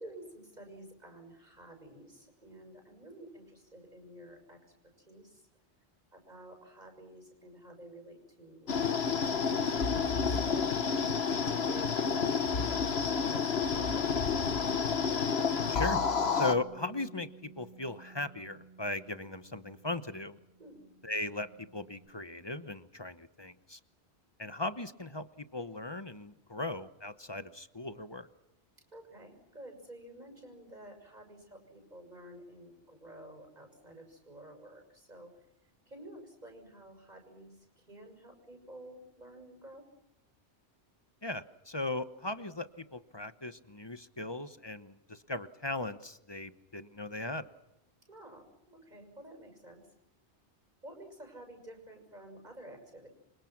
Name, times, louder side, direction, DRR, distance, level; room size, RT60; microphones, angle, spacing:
voice 1, 0.0-4.6 5.1-5.5 6.1-8.7 8.9-10.7 11.1-14.3 20.6-20.8 28.9-35.3 35.9-39.8 48.1-49.8 50.8-53.1, right 1 dB, 40° right, 4 dB, 6.5 m, -51 dB
sound 1, 8.7-16.6, left 5 dB, 70° left, 1.4 m, -30 dB
voice 2, 15.7-16.0 16.3-20.4 21.0-23.8 24.4-28.3 41.2-47.5, left 2 dB, 25° left, 12 dB, 0.9 m, -38 dB
Bass guitar, 15.8-22.1, right 3 dB, 5° right, 4.1 m, -52 dB
28.0 x 25.0 x 6.0 m, 0.86 s
omnidirectional pair, 1.1 m